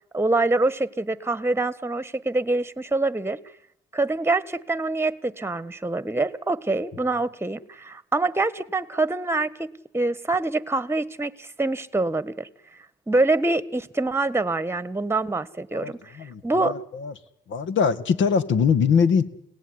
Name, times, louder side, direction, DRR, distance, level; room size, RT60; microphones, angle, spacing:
voice 1, 0.1-3.4 3.9-12.5 13.1-16.7, right 2 dB, 10° right, 17 dB, 1.4 m, -25 dB
voice 2, 15.7-17.1 17.5-19.2, left 6 dB, 75° left, 14 dB, 2.0 m, -22 dB
29.5 x 18.0 x 9.9 m, 0.81 s
cardioid pair, 90°, 20 cm